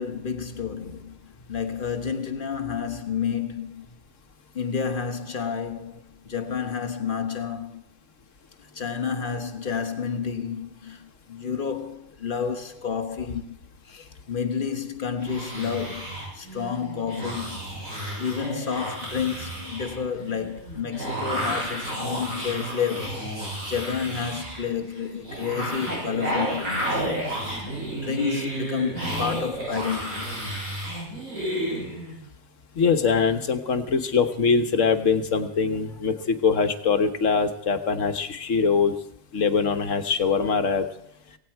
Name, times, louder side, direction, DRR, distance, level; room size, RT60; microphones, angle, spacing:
voice 1, 0.0-4.0 4.5-7.8 8.6-13.5 13.8-17.6 17.9-27.6 27.9-30.4, left 6 dB, 40° left, 1.3 m, -30 dB
sound 1, 15.2-32.1, right 1 dB, 70° right, 7.6 m, -32 dB
voice 2, 32.8-38.9 39.3-40.9, left 5 dB, 60° left, 1.5 m, -23 dB
17.5 x 17.0 x 4.6 m
omnidirectional pair, 1.5 m